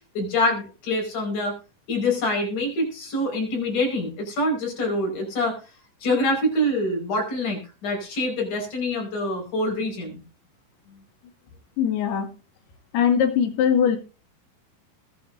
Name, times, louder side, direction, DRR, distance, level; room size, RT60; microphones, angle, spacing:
voice 1, 0.1-1.6 1.9-5.6 6.0-10.2, left 1 dB, 50° left, 1 dB, 6.7 m, -25 dB
voice 2, 11.8-12.3 12.9-14.0, left 8 dB, 80° left, 5 dB, 4.0 m, -21 dB
20.0 x 8.6 x 2.7 m, 0.34 s
omnidirectional pair, 4.5 m